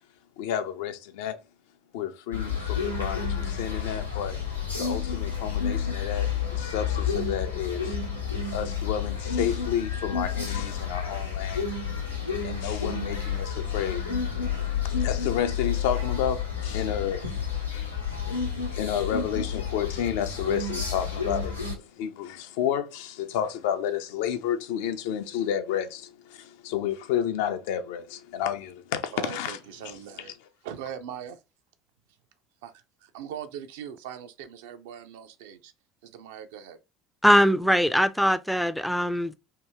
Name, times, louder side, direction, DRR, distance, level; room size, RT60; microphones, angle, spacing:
voice 1, 0.4-1.4 1.9-4.4 4.8-8.0 8.5-11.7 12.4-14.1 14.8-17.2 17.7-17.9 18.7-29.6, left 9 dB, 60° left, 0.5 m, -31 dB
sound 1, 2.3-21.8, left 6 dB, 85° left, 0.8 m, -30 dB
voice 2, 29.1-30.3 30.6-31.3 32.6-32.7 33.1-35.7 36.0-36.8, right 9 dB, 65° right, 0.5 m, -40 dB
voice 3, 37.2-39.3, equal, ahead, 0.4 m, -21 dB
2.9 x 2.7 x 3.4 m
figure-of-eight pair, 60°, 0 cm